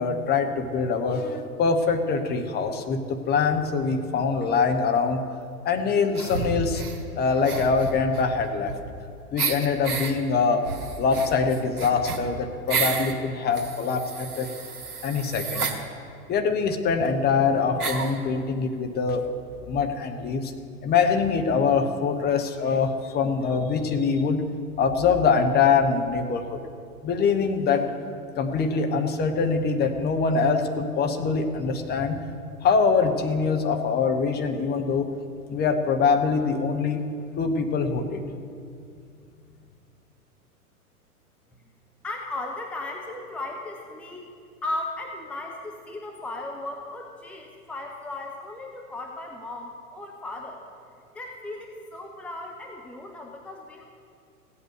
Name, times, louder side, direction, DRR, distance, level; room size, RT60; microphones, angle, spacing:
voice 1, 0.0-5.2 5.6-6.8 7.2-8.7 9.3-10.7 11.0-14.5 15.0-15.7 16.3-19.3 19.7-20.5 20.8-24.4 24.8-26.6 27.0-27.9 28.4-32.2 32.6-35.1 35.5-37.0 37.4-38.2, left 5 dB, 20° left, 6 dB, 1.0 m, -24 dB
sound 1, 6.2-7.0 7.4-9.0 9.4-10.1 10.6-13.1 13.5-15.8 16.7-16.8 17.0-17.1 17.8-18.2, right 5 dB, 75° right, 1.7 m, -31 dB
voice 2, 42.0-44.3 44.6-50.6 51.1-53.8, left 2 dB, 5° left, 1 dB, 0.8 m, -36 dB
16.0 x 8.5 x 6.6 m, 2.4 s
figure-of-eight pair, 105°, 45 cm